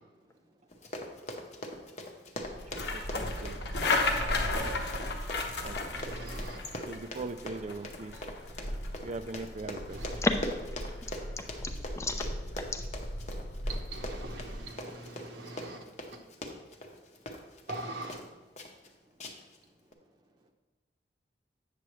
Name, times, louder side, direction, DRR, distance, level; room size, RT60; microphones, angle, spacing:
voice 1, 0.1-0.7 1.4-1.6 2.1-2.2 17.0-17.3 18.6-19.2 19.8-20.0 20.3-20.5, right 1 dB, 25° right, 0.8 m, -68 dB
Run, 0.7-18.3 18.6-18.9 19.2-19.6 19.9-20.0, left 1 dB, 40° left, 0.8 m, -42 dB
sound 1, 2.4-14.7, left 2 dB, 70° left, 0.9 m, -35 dB
voice 2, 2.7-3.7 4.4-4.8 5.6-6.4 6.7-8.2 9.0-10.1, right 3 dB, 40° right, 0.4 m, -41 dB
voice 3, 5.9-6.6 9.9-10.2 13.7-15.8 17.7-18.2, right 2 dB, 75° right, 0.9 m, -42 dB
voice 4, 10.1-10.9 11.4-12.8, left 2 dB, 15° left, 0.5 m, -34 dB
8.4 x 6.7 x 3.1 m
head